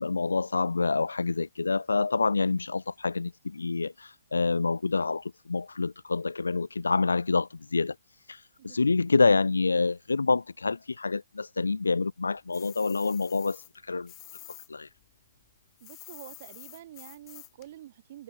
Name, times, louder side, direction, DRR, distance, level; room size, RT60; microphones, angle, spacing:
voice 1, 0.0-14.1 14.7-14.9, left 4 dB, 85° left, 0.5 m, -27 dB
sound 1, 12.5-14.7 15.0-17.7, left 19 dB, 25° left, 2.9 m, -48 dB
voice 2, 15.8-18.2, right 13 dB, 45° right, 5.9 m, -47 dB
figure-of-eight pair, 135°, 0 cm